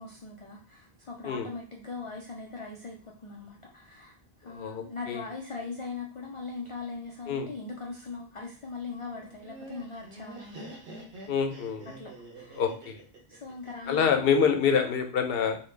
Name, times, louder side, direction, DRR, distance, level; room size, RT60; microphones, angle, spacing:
voice 1, 0.0-10.8 11.9-12.7 13.3-14.3, left 4 dB, 50° left, 0 dB, 0.4 m, -40 dB
voice 2, 4.5-5.2 7.3-7.5 11.3-11.9 12.6-13.0 13.9-15.6, left 6 dB, 65° left, 5 dB, 0.8 m, -26 dB
Laughter, 9.2-14.3, right 2 dB, 70° right, 1.1 m, -46 dB
3.9 x 2.3 x 3.2 m, 0.41 s
omnidirectional pair, 1.1 m